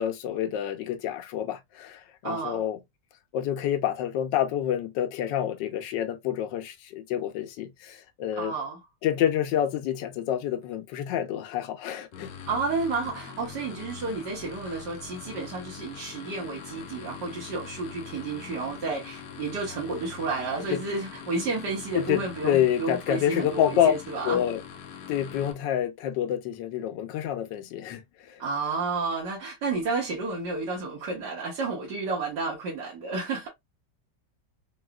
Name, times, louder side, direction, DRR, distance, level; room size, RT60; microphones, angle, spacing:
voice 1, 0.0-2.8 3.3-8.5 9.0-12.3 20.7-20.8 22.0-23.9 24.2-24.6 25.1-28.4, left 10 dB, 90° left, 1.3 m, -28 dB
voice 2, 2.2-2.6 8.4-8.8 12.5-24.4 28.4-33.5, right 3 dB, 70° right, 1.6 m, -31 dB
sound 1, 12.1-25.5, left 7 dB, 70° left, 1.1 m, -43 dB
3.8 x 2.4 x 2.3 m
omnidirectional pair, 1.9 m